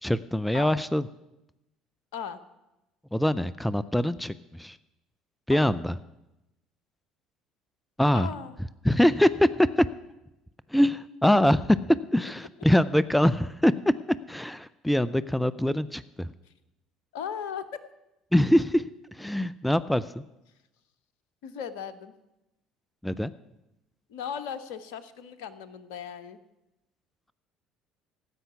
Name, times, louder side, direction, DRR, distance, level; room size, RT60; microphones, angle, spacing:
voice 1, 0.0-1.0 3.1-4.8 5.5-5.9 8.0-8.3 8.8-9.9 10.7-13.7 14.3-16.3 18.3-18.8 19.1-20.1 23.0-23.3, left 1 dB, 5° left, 16 dB, 0.5 m, -23 dB
voice 2, 8.1-8.5 16.5-16.6 17.1-17.8 21.4-22.1 24.1-26.4, left 7 dB, 70° left, 13 dB, 0.9 m, -37 dB
15.5 x 5.7 x 9.6 m, 0.96 s
hypercardioid pair, 60°, 0 cm